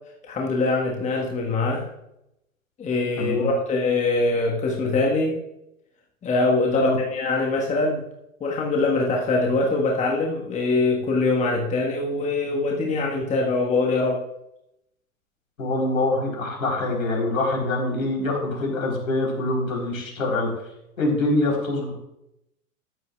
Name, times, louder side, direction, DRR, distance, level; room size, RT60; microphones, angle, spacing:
voice 1, 0.2-1.9 2.8-5.4 6.2-8.0 8.4-14.2, left 3 dB, 15° left, -1 dB, 1.5 m, -23 dB
voice 2, 3.2-3.5 6.7-7.0 15.6-20.5 21.0-22.0, left 2 dB, 70° left, 0 dB, 4.0 m, -24 dB
13.5 x 11.0 x 2.4 m, 0.85 s
figure-of-eight pair, 95°, 42 cm